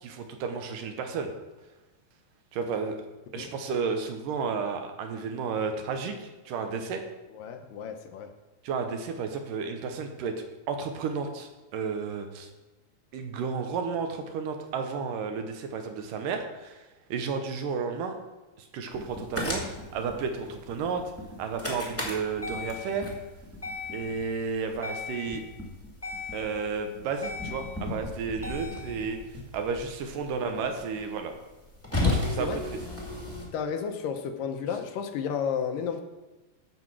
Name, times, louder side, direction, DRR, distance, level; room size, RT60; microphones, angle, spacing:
voice 1, 0.0-1.3 2.5-3.0 3.3-7.0 8.6-10.3 10.7-12.5 13.1-16.8 17.1-18.2 18.6-19.6 19.9-21.0 21.4-23.1 23.9-25.4 26.3-29.2 29.5-31.3 31.9-32.6, right 5 dB, 70° right, 6 dB, 2.4 m, -32 dB
voice 2, 7.3-8.3 30.4-31.1 32.4-32.6 33.5-36.0, left 7 dB, 75° left, 6 dB, 2.3 m, -33 dB
sound 1, 18.9-33.5, left 2 dB, 5° left, 1.1 m, -35 dB
14.0 x 4.9 x 6.1 m, 1.1 s
omnidirectional pair, 4.3 m